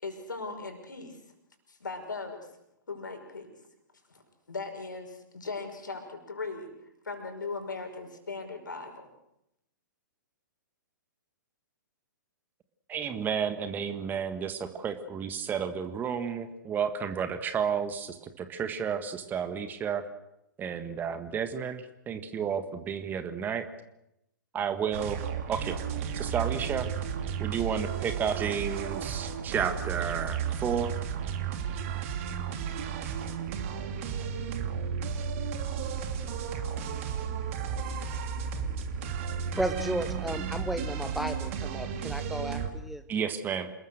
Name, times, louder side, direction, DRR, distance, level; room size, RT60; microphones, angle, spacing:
voice 1, 0.0-1.2 1.7-2.5 2.9-3.6 4.1-4.2 4.5-6.7 7.0-9.1, left 4 dB, 70° left, 5 dB, 5.6 m, -38 dB
voice 2, 12.9-20.0 20.6-23.7 24.5-25.2 25.5-25.8 26.1-26.9 27.4-30.9 43.1-43.7, right 7 dB, 15° right, 10 dB, 1.6 m, -32 dB
sound 1, 24.9-42.7, right 7 dB, 40° right, 2.8 m, -33 dB
voice 3, 39.6-43.0, right 1 dB, ahead, 10 dB, 0.9 m, -33 dB
28.0 x 20.5 x 6.5 m, 0.83 s
figure-of-eight pair, 115°, 11 cm